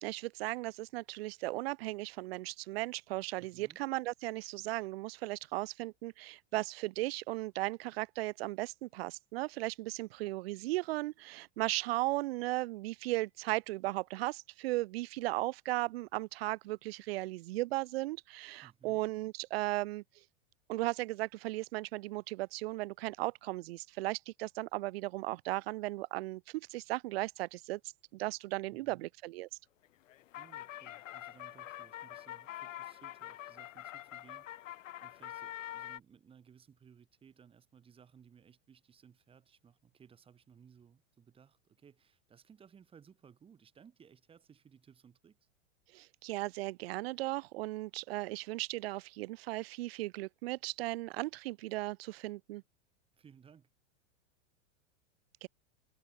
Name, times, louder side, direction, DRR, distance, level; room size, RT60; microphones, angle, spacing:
voice 1, 0.0-20.0 20.7-27.8 28.1-29.5 45.9-52.6 55.4-55.5, right 19 dB, 50° right, 1.3 m, -36 dB
voice 2, 3.4-3.8 18.6-19.1 28.7-29.1 30.4-45.4 53.1-53.7, right 7 dB, 15° right, 4.8 m, -61 dB
sound 1, 29.8-36.0, left 13 dB, 80° left, 2.9 m, -45 dB
supercardioid pair, 165°, 37 cm